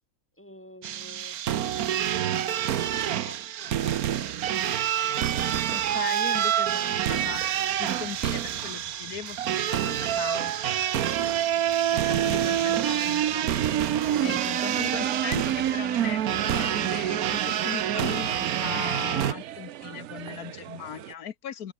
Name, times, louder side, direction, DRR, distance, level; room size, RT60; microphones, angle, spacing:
voice 1, 0.3-1.4 2.1-4.9 5.9-6.5 11.8-12.8 14.5-14.8, equal, 10° left, 7.3 m, -49 dB
sound 1, 0.8-19.3, right 10 dB, 80° right, 1.4 m, -27 dB
voice 2, 5.7-7.4 7.7-10.5 11.9-13.5 14.2-21.7, left 9 dB, 85° left, 1.6 m, -38 dB
sound 2, 7.1-17.3, right 1 dB, 35° right, 7.5 m, -55 dB
sound 3, 12.9-21.1, right 12 dB, 60° right, 0.8 m, -38 dB
open air
omnidirectional pair, 1.5 m